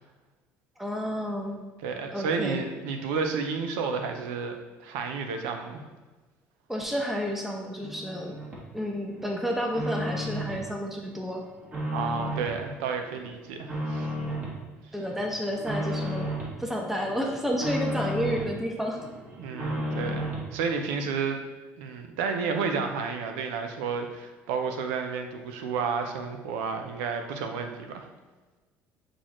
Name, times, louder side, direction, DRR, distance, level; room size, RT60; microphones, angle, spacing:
voice 1, 0.8-1.6 2.1-2.6 6.7-8.4 8.7-11.4 14.9-16.3 16.6-19.0, equal, 5° right, 1 dB, 0.8 m, -30 dB
voice 2, 1.8-5.8 11.9-14.1 19.4-21.4 21.8-28.1, right 5 dB, 85° right, 5 dB, 0.5 m, -31 dB
sound 1, 7.8-8.7 9.1-10.7 11.0-12.6 13.0-14.6 15.0-16.6 16.9-18.5 18.9-20.5, equal, 30° right, 1.2 m, -33 dB
6.1 x 2.5 x 3.0 m, 1.3 s
supercardioid pair, 90°, 6 cm